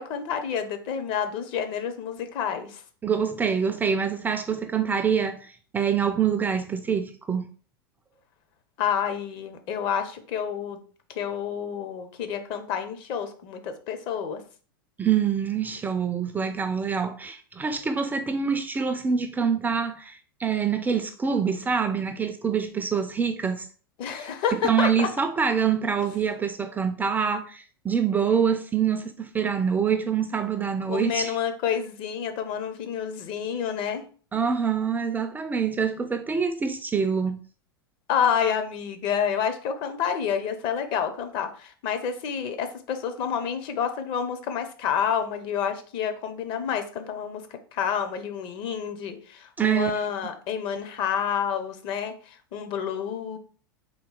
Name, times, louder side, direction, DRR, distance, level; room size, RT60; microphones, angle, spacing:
voice 1, 0.0-2.8 8.8-10.8 11.1-14.4 24.0-25.1 30.9-34.0 38.1-47.4 47.7-53.4, left 8 dB, 45° left, 0.8 m, -29 dB
voice 2, 3.0-7.5 15.0-23.7 24.1-24.3 24.6-31.4 34.3-37.4 49.6-50.0, right 6 dB, 15° right, 0.4 m, -25 dB
3.8 x 2.8 x 3.8 m
figure-of-eight pair, 90°, 12 cm